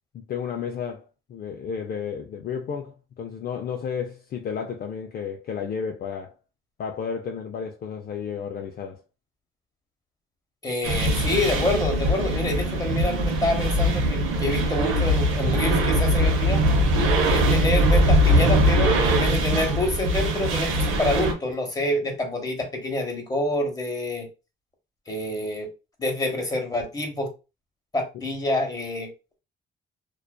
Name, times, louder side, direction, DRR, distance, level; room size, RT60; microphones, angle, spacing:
voice 1, 0.1-6.3 6.8-9.0, left 6 dB, 50° left, 0.4 m, -32 dB
voice 2, 10.6-16.6 17.3-24.3 25.1-25.7 26.0-27.3 27.9-29.1, left 1 dB, 20° left, 0.9 m, -27 dB
sound 1, 10.8-21.3, equal, 85° right, 0.7 m, -21 dB
2.4 x 2.3 x 2.2 m
cardioid pair, 90°, 20 cm